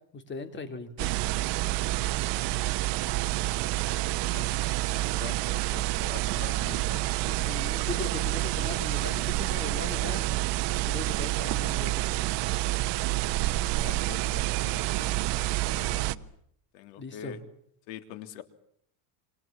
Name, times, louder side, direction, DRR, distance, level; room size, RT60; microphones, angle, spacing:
voice 1, 0.1-1.1 7.2-10.3 10.8-12.0 17.0-17.4, left 4 dB, 20° left, 9 dB, 3.2 m, -39 dB
sound 1, 1.0-16.2, right 17 dB, 55° right, 1.2 m, -28 dB
voice 2, 4.1-7.1 13.7-15.3 15.6-16.3 16.7-17.4 17.9-18.4, left 11 dB, 85° left, 10 dB, 3.5 m, -45 dB
28.5 x 27.0 x 7.4 m, 0.69 s
cardioid pair, 145°, 50 cm